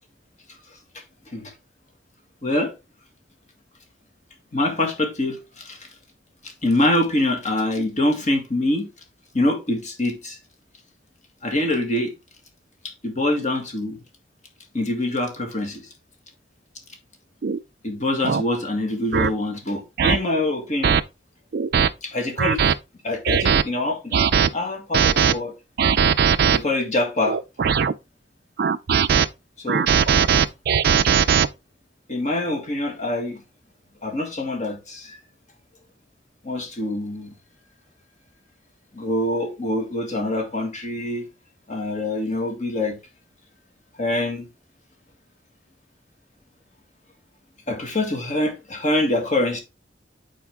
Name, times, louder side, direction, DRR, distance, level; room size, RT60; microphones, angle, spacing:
voice 1, 2.4-2.7 4.5-5.8 6.4-8.9 9.3-10.4 11.4-12.1 12.8-14.0 14.7-15.8 17.8-21.0 22.0-22.6 23.0-25.5 26.5-27.4 29.6-29.9 32.1-33.4 34.0-35.2 36.4-37.3 38.9-41.2 41.7-43.0 44.0-44.5 47.7-49.6, left 1 dB, 40° left, 1.8 m, -25 dB
sound 1, 17.4-17.6 18.2-18.4 19.1-19.3 20.0-20.2 20.8-21.0 21.5-21.9 22.4-22.8 23.3-23.6 24.1-24.5 24.9-25.3 25.8-26.6 27.2-27.9 28.6-29.3 29.7-31.5, right 7 dB, 55° right, 0.4 m, -19 dB
8.5 x 4.5 x 3.6 m
head